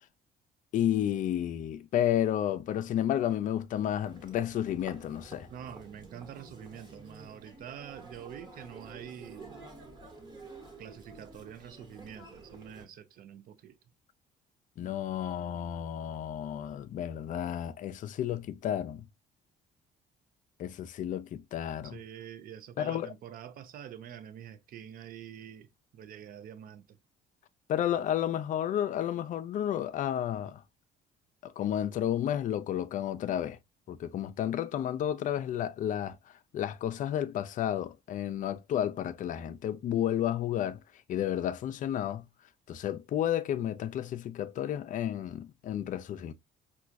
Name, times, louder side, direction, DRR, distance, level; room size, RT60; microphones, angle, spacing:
voice 1, 0.7-5.5 14.8-19.1 20.6-22.0 22.8-23.1 27.7-30.6 31.4-33.6 33.9-40.8 41.1-42.3 42.7-46.3, left 10 dB, 50° left, 0.4 m, -31 dB
Human voice, 4.0-12.9, right 3 dB, 25° right, 1.2 m, -50 dB
voice 2, 5.5-9.7 10.8-13.8 21.8-27.0, right 9 dB, 60° right, 0.6 m, -46 dB
4.4 x 2.3 x 2.4 m
cardioid pair, 110°, 17 cm